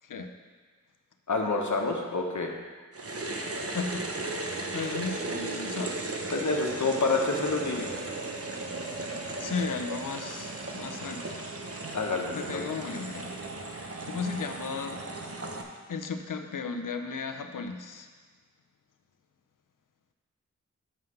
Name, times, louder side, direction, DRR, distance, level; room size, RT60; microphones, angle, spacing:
voice 1, 1.3-2.5 6.3-7.9 11.9-12.6, left 3 dB, 65° left, 1 dB, 1.3 m, -28 dB
sound 1, 2.9-15.6, right 2 dB, 50° right, 1.0 m, -36 dB
voice 2, 3.7-4.2 4.7-6.0 9.4-11.4 12.3-13.4 14.0-15.0 15.9-18.1, left 4 dB, 85° left, 6 dB, 0.7 m, -35 dB
7.3 x 5.7 x 6.5 m, 1.5 s
wide cardioid pair, 65°, 31 cm